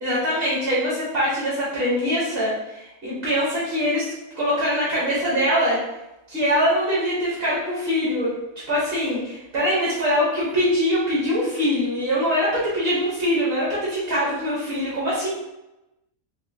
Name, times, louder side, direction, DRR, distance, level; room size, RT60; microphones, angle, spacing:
voice 1, 0.0-4.1 4.3-5.8 6.3-8.3 8.7-15.3, equal, 45° right, -8 dB, 1.3 m, -23 dB
3.7 x 2.8 x 2.8 m, 0.95 s
omnidirectional pair, 1.5 m